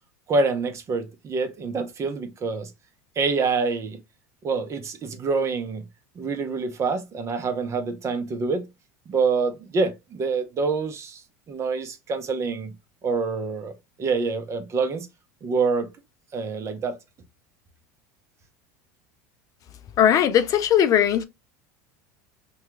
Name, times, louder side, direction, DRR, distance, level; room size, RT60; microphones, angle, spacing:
voice 1, 0.3-2.7 3.2-4.0 4.4-5.8 6.2-8.6 9.1-11.2 11.5-12.7 13.0-13.7 14.0-15.1 15.4-15.9 16.3-17.0, right 4 dB, 35° right, 0.7 m, -26 dB
voice 2, 20.0-21.2, left 10 dB, 40° left, 0.4 m, -19 dB
2.8 x 2.3 x 3.5 m
supercardioid pair, 105°, 9 cm